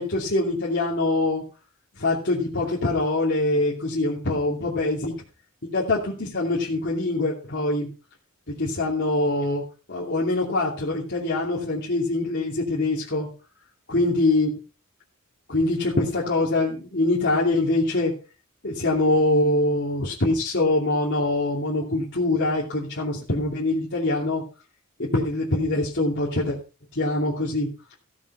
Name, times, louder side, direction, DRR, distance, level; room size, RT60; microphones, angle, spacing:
voice 1, 0.0-1.4 2.0-5.1 5.7-7.9 8.5-9.6 9.9-13.3 13.9-14.5 15.5-18.1 18.6-24.4 25.0-26.6 26.9-27.7, left 2 dB, 55° left, -4 dB, 2.8 m, -24 dB
15.5 x 7.5 x 5.6 m, 0.35 s
head